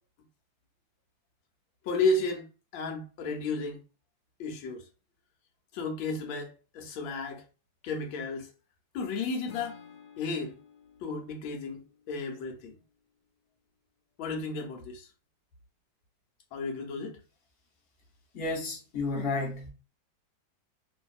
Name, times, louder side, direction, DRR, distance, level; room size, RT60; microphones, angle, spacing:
voice 1, 1.8-2.5 2.7-3.8 4.4-4.8 5.7-7.4 7.8-8.5 8.9-9.8 10.2-10.6 11.0-12.8 14.2-15.1 16.5-17.2, left 3 dB, 90° left, 1.5 m, -33 dB
Acoustic guitar / Strum, 9.4-12.6, left 6 dB, 65° left, 1.0 m, -53 dB
voice 2, 18.3-19.7, left 3 dB, 40° left, 0.9 m, -32 dB
3.0 x 2.6 x 2.3 m
omnidirectional pair, 2.1 m